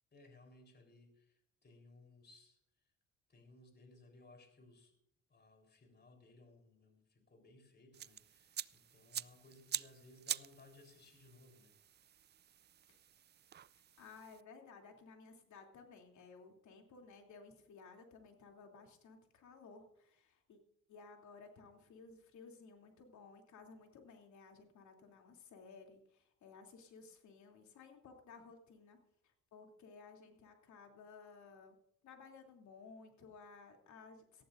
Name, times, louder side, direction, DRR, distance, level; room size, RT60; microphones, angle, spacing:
voice 1, 0.1-2.6 3.3-4.9 5.3-11.8, left 2 dB, 35° left, 4 dB, 3.9 m, -62 dB
sound 1, 7.9-14.4, right 10 dB, 35° right, 0.4 m, -46 dB
voice 2, 14.0-20.6 20.9-29.0 29.2-31.8 32.0-34.4, left 4 dB, 70° left, 3 dB, 3.0 m, -57 dB
18.5 x 14.0 x 2.6 m, 0.74 s
cardioid pair, 90°, 30 cm